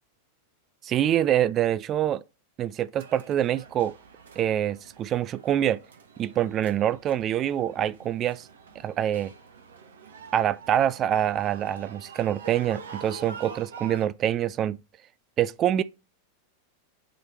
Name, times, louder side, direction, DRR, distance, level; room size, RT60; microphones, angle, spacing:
voice 1, 0.8-2.2 2.6-3.9 4.4-5.8 6.2-8.5 8.8-9.3 10.3-14.8 15.4-15.8, right 11 dB, 30° right, 0.3 m, -25 dB
sound 1, 3.0-14.1, right 5 dB, 65° right, 1.0 m, -46 dB
7.6 x 3.4 x 4.2 m
figure-of-eight pair, 90°, 0 cm